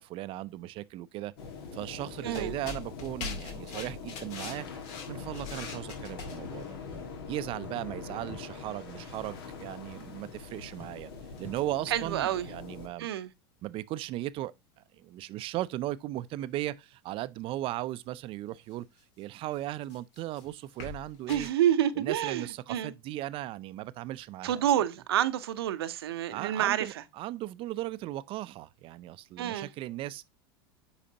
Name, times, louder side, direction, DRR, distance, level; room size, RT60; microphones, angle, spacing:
voice 1, 0.0-1.3 1.7-4.7 5.1-6.8 7.3-11.1 11.4-13.1 13.6-14.5 15.0-18.9 19.2-21.5 22.0-24.7 26.3-30.3, right 15 dB, 45° right, 0.5 m, -37 dB
sound 1, 1.4-12.9, left 5 dB, 75° left, 1.8 m, -43 dB
voice 2, 2.2-2.6 11.9-12.5 13.0-13.3 21.3-22.9 24.4-27.0 29.4-29.7, right 11 dB, 80° right, 0.7 m, -28 dB
sound 2, 2.3-6.8 8.1-8.2 10.6-10.8 11.4-11.6 12.0-12.1 18.7-18.8 19.6-21.5, left 5 dB, 60° left, 2.2 m, -43 dB
sound 3, 6.9-8.0 8.3-12.4, left 1 dB, 15° left, 1.8 m, -54 dB
8.5 x 5.0 x 2.8 m
hypercardioid pair, 105°, 13 cm